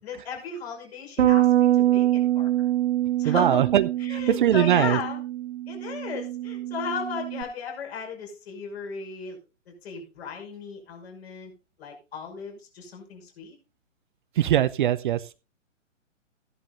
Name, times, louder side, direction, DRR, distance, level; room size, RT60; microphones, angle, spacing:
voice 1, 0.0-2.7 3.2-3.6 4.0-5.2 5.7-9.4 9.7-11.5 11.8-13.6, left 6 dB, 55° left, 2 dB, 5.8 m, -35 dB
Bass guitar, 1.2-7.4, right 13 dB, 65° right, 1.8 m, -24 dB
voice 2, 3.2-5.0 14.4-15.4, right 11 dB, 40° right, 14 dB, 0.6 m, -22 dB
15.0 x 11.0 x 2.5 m, 0.30 s
figure-of-eight pair, 130°, 38 cm